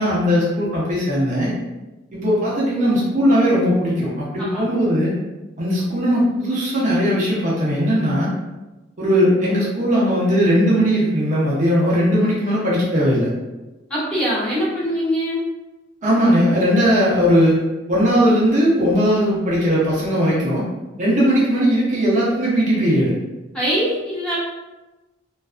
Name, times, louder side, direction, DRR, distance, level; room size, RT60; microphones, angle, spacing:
voice 1, 0.0-1.5 2.1-5.1 5.6-8.3 9.0-13.3 16.0-17.6 17.9-20.6 21.0-23.2, equal, 40° right, -6 dB, 0.6 m, -18 dB
voice 2, 13.9-15.4 23.5-24.4, equal, 5° left, -9 dB, 0.8 m, -22 dB
2.5 x 2.3 x 2.3 m, 1.1 s
head